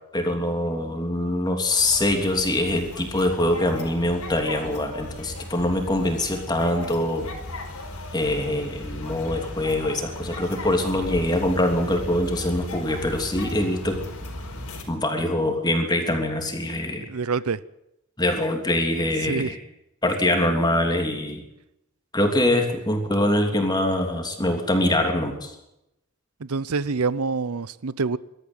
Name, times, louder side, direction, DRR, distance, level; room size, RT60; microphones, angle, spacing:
voice 1, 0.1-7.3 8.1-14.0 14.9-17.1 18.2-19.6 20.0-21.4 22.1-25.5, left 1 dB, 20° left, 3.1 m, -24 dB
sound 1, 1.7-14.8, left 1 dB, 90° left, 4.8 m, -36 dB
voice 2, 17.1-17.6 19.2-19.5 26.4-28.2, right 4 dB, 90° right, 0.7 m, -26 dB
22.0 x 13.5 x 9.2 m
head